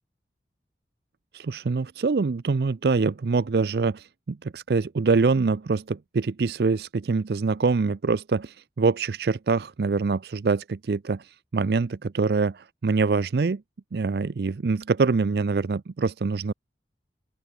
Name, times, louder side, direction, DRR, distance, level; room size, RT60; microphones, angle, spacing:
voice 1, 1.3-13.6 13.9-16.5, right 4 dB, 60° right, 0.5 m, -25 dB
open air
head